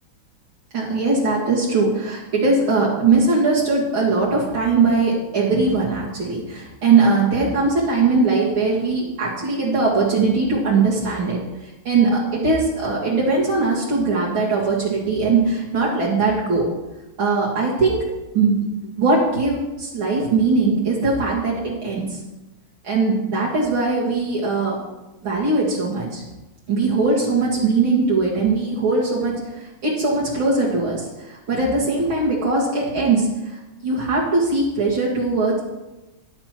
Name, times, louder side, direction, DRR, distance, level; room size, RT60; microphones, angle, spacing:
voice 1, 0.7-16.7 17.2-18.0 18.3-18.7 19.0-22.2 22.8-24.8 25.2-26.2 26.7-35.6, right 3 dB, 75° right, -6 dB, 2.7 m, -20 dB
14.0 x 11.0 x 3.0 m, 1.0 s
omnidirectional pair, 2.3 m